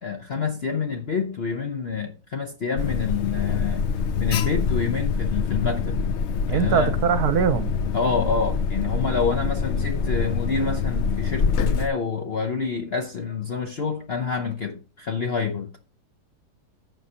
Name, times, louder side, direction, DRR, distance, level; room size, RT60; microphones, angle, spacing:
voice 1, 0.0-3.9 4.2-6.0 6.5-6.9 7.9-15.8, left 5 dB, 55° left, 0.7 m, -27 dB
Alarm, 2.8-11.9, left 5 dB, 85° left, 0.6 m, -25 dB
voice 2, 6.4-7.7, right 8 dB, 65° right, 1.2 m, -22 dB
14.5 x 5.8 x 2.9 m
omnidirectional pair, 1.9 m